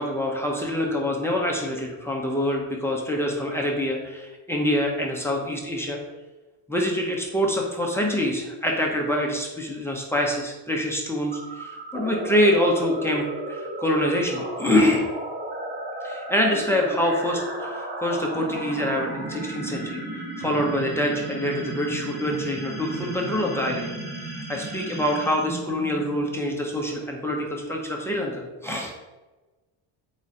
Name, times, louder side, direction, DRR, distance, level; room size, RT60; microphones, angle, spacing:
voice 1, 0.0-6.0 6.7-15.1 16.0-20.0 20.4-23.9 24.5-28.9, left 1 dB, 5° left, -1 dB, 0.8 m, -25 dB
sound 1, 11.3-26.4, right 1 dB, 20° right, 1.1 m, -34 dB
7.7 x 4.9 x 4.2 m, 1.2 s
cardioid pair, 180°, 48 cm